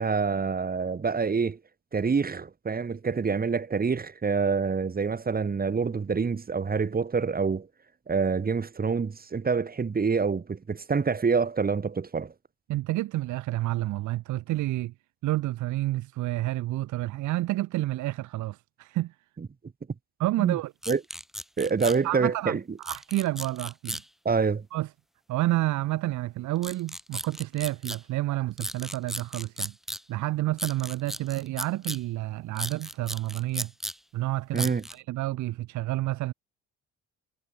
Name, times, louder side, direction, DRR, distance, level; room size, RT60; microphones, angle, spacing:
voice 1, 0.0-1.6 1.9-7.7 8.1-12.3 19.4-19.5 20.4-20.6 20.9-21.0 21.6-22.8 24.2-24.7 34.5-34.8, right 5 dB, 30° right, 1.7 m, -26 dB
voice 2, 12.7-14.9 15.2-19.1 20.2-20.7 22.0-24.0 24.7-24.9 25.3-29.7 30.1-33.7 34.1-36.3, right 16 dB, 75° right, 0.6 m, -29 dB
sound 1, 20.8-22.0 22.8-24.0 26.6-28.0 28.6-30.0 30.6-32.0 32.6-34.0 34.6-34.9, equal, ahead, 0.7 m, -35 dB
cardioid pair, 90°, 30 cm